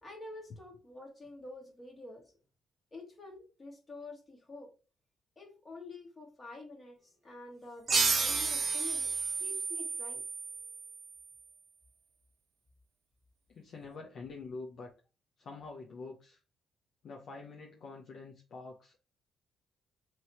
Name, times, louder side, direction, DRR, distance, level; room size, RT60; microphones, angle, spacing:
voice 1, 0.0-2.3 2.9-4.7 5.3-10.2, left 2 dB, 25° left, -1 dB, 1.6 m, -48 dB
sound 1, 7.9-11.1, right 4 dB, 45° right, 0.9 m, -31 dB
voice 2, 13.5-14.9 15.4-16.4 17.0-19.0, left 3 dB, 65° left, 0 dB, 0.7 m, -46 dB
3.1 x 2.8 x 4.3 m, 0.33 s
cardioid pair, 85°, 0 cm